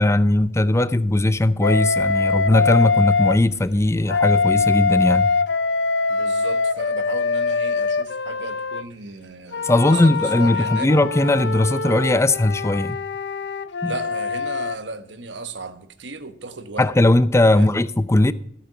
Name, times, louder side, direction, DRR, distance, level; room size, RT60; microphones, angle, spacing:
voice 1, 0.0-5.3 9.6-13.0 13.8-13.9 16.8-18.3, left 1 dB, 15° left, 0.5 m, -18 dB
Wind instrument woodwind instrument, 1.6-3.4 4.1-8.8 9.5-14.8, left 4 dB, 65° left, 0.6 m, -23 dB
voice 2, 6.1-10.9 13.8-16.9 17.5-17.8, right 3 dB, 85° right, 1.2 m, -35 dB
14.0 x 8.6 x 4.9 m
head